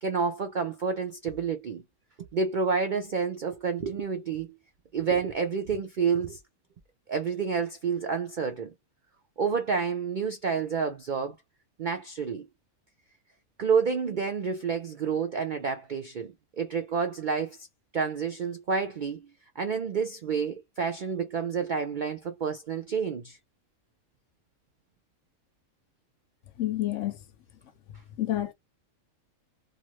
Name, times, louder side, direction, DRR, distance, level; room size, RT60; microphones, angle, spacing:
voice 1, 0.0-1.8 2.2-4.6 4.9-6.4 7.1-8.7 9.4-11.3 11.8-12.5 13.6-17.7 17.9-19.3 19.6-23.4, right 5 dB, 70° right, 0.4 m, -29 dB
voice 2, 26.6-27.2 28.2-28.5, left 14 dB, 70° left, 0.8 m, -28 dB
2.5 x 2.4 x 2.9 m
omnidirectional pair, 1.5 m